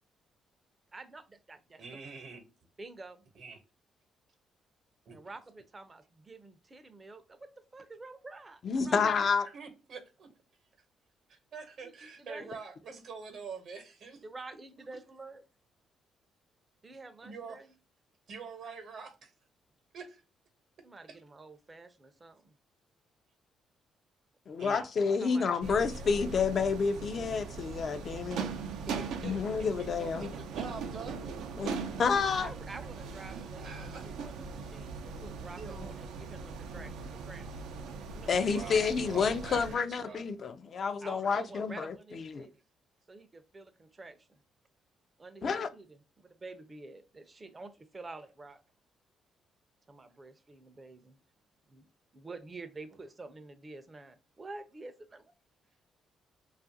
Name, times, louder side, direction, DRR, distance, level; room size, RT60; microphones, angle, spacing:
voice 1, 0.9-1.8 2.8-3.2 5.1-9.1 11.8-12.6 14.2-15.4 16.8-17.7 20.8-22.5 24.7-24.9 25.2-26.2 32.4-37.5 38.1-38.9 41.0-42.6 43.1-44.4 45.2-46.0 46.4-48.6 49.9-51.2 51.7-51.9 52.1-55.2, right 3 dB, 25° right, 0.4 m, -48 dB
voice 2, 1.8-2.4 3.4-3.6 5.1-5.2 8.8-9.1 9.4-10.3 11.3-14.2 17.2-17.6 18.3-19.3 19.9-20.2 24.6-24.8 28.9-29.4 29.8-31.3 31.6-31.8 33.3-34.5 35.6-36.0 38.3-40.2, right 5 dB, 65° right, 0.8 m, -45 dB
voice 3, 8.6-9.5 24.5-28.4 29.2-30.3 31.6-32.5 38.3-42.5 45.4-45.7, left 5 dB, 50° left, 0.3 m, -29 dB
sound 1, 25.6-39.8, right 4 dB, 90° right, 0.4 m, -40 dB
2.7 x 2.4 x 2.6 m
cardioid pair, 90°, 0 cm